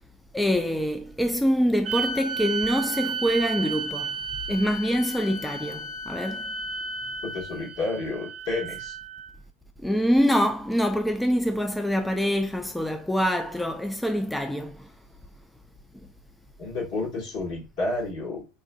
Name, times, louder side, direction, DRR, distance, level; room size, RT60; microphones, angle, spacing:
voice 1, 0.3-4.1 4.5-6.4 9.8-14.8, equal, 5° left, 0.3 m, -25 dB
sound 1, 1.8-9.3, right 4 dB, 35° right, 0.7 m, -33 dB
voice 2, 7.2-9.0 16.6-18.4, left 2 dB, 60° left, 1.7 m, -30 dB
3.1 x 2.4 x 2.3 m
hypercardioid pair, 80°, 0 cm